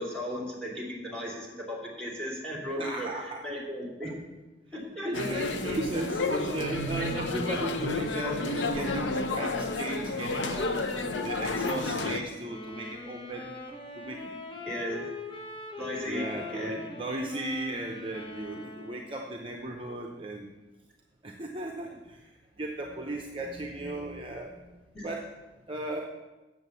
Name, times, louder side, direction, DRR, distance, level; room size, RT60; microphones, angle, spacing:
voice 1, 0.0-4.1 4.7-5.1 14.6-15.1 15.8-16.9 24.9-25.1, equal, 5° left, -4 dB, 2.9 m, -36 dB
voice 2, 2.8-3.6 4.0-4.2 5.0-13.5 14.0-14.3 16.1-20.5 21.2-22.2 22.6-24.8 25.0-25.3 25.7-26.0, right 2 dB, 30° right, 1 dB, 0.7 m, -36 dB
sound 1, 5.1-12.2, left 3 dB, 85° left, 0.8 m, -31 dB
sound 2, 12.4-19.2, left 3 dB, 25° left, 1.1 m, -42 dB
8.0 x 7.3 x 6.9 m, 1.2 s
head